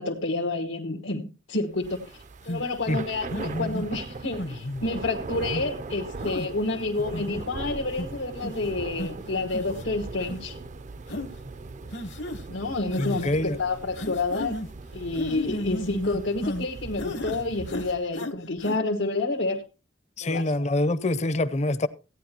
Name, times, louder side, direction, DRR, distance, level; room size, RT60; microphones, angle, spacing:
voice 1, 0.0-2.2 2.5-10.6 12.5-14.5 14.9-19.6 20.2-20.6, left 2 dB, 90° left, 1.4 m, -29 dB
Thunder / Rain, 1.8-18.1, right 3 dB, 40° right, 0.5 m, -40 dB
sound 1, 2.5-2.6 3.3-3.9 4.4-4.9 5.4-5.6 6.2-6.5 7.0-7.4 8.0-8.1 8.4-8.6 9.0-9.1 9.5-9.8 10.2-10.4 11.1-11.3 11.9-12.4 12.9-13.3 14.0-14.7 15.2-16.7 17.0-17.4 17.7-18.3 18.6-18.8, left 1 dB, 70° left, 1.1 m, -33 dB
voice 2, 13.0-13.6 20.2-21.9, left 1 dB, 40° left, 0.6 m, -25 dB
16.0 x 9.9 x 2.9 m
head